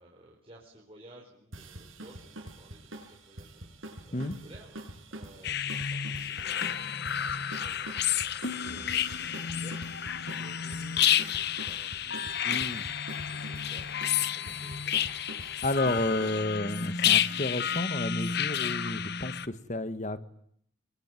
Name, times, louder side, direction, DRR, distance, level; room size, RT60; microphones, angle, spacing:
voice 1, 0.0-13.9 14.3-15.0, right 1 dB, 30° right, -2 dB, 4.7 m, -55 dB
sound 1, 1.5-16.3, right 1 dB, 80° right, 6.4 m, -46 dB
sound 2, 5.4-19.5, left 9 dB, 50° left, 1.0 m, -30 dB
voice 2, 12.4-12.9 15.6-20.2, left 1 dB, 35° left, 12 dB, 1.7 m, -31 dB
27.5 x 22.5 x 9.3 m, 0.69 s
head